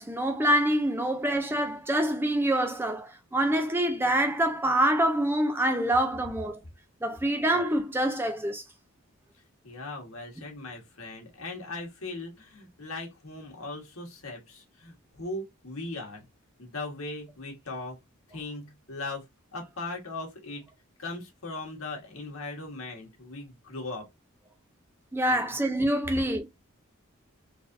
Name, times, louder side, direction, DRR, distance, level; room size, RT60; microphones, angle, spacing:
voice 1, 0.0-6.6 7.0-8.6 25.1-26.4, right 1 dB, 10° right, 0.5 m, -26 dB
voice 2, 9.6-16.2 16.6-18.0 18.3-19.2 19.5-20.6 21.0-24.1 25.3-25.5, left 2 dB, 80° left, 1.6 m, -39 dB
4.1 x 3.3 x 2.6 m
head